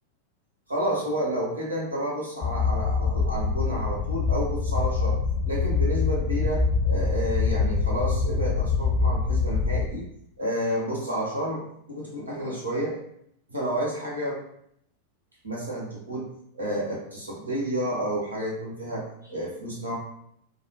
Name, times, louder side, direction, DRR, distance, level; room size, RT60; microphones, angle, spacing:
voice 1, 0.7-5.2 5.4-10.0 10.4-13.0 13.5-14.4 15.4-16.3 16.6-19.9, right 1 dB, 80° right, -5 dB, 1.0 m, -30 dB
sound 1, 2.4-9.9, left 4 dB, 45° left, 0.3 m, -25 dB
3.0 x 2.0 x 2.8 m, 0.72 s
figure-of-eight pair, 90°, 0 cm